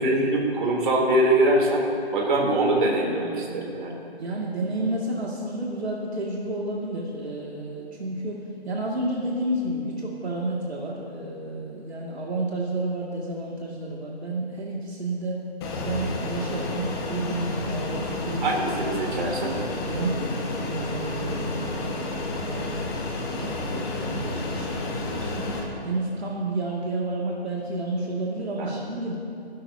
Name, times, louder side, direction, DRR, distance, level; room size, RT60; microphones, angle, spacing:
voice 1, 0.0-1.8 2.1-4.0 18.4-19.5 28.6-28.7, right 1 dB, 50° right, -1 dB, 3.6 m, -23 dB
voice 2, 4.2-15.4 15.7-18.5 18.8-19.1 19.8-22.6 23.4-25.5 25.8-29.2, right 2 dB, 75° right, -3 dB, 2.5 m, -31 dB
Fixed-wing aircraft airplane, 15.6-25.6, left 2 dB, 25° left, 1.7 m, -30 dB
28.0 x 12.0 x 2.9 m, 2.7 s
figure-of-eight pair, 150°, 32 cm